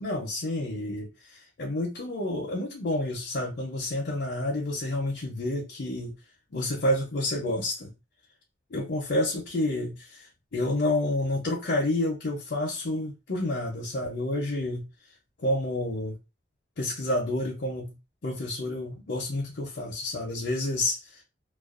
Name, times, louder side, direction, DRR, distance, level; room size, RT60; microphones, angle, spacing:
voice 1, 0.0-6.1 6.5-7.9 8.7-14.9 15.4-16.2 16.8-18.0 18.2-21.2, left 1 dB, 65° left, 0.6 m, -29 dB
2.4 x 2.2 x 2.4 m
head